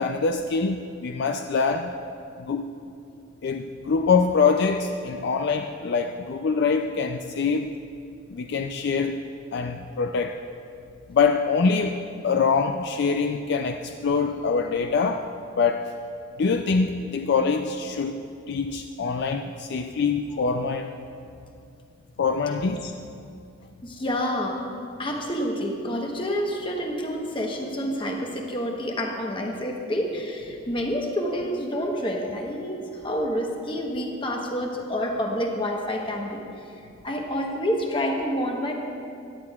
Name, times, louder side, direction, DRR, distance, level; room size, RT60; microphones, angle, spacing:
voice 1, 0.0-1.9 2.4-2.6 3.4-7.7 8.3-9.2 9.5-10.4 11.1-15.3 15.6-15.9 16.4-18.2 18.5-20.9 22.2-22.9, left 5 dB, 55° left, 6 dB, 0.3 m, -24 dB
voice 2, 23.8-24.7 25.0-38.7, equal, 25° left, 1 dB, 1.0 m, -28 dB
16.5 x 10.5 x 2.4 m, 2.5 s
head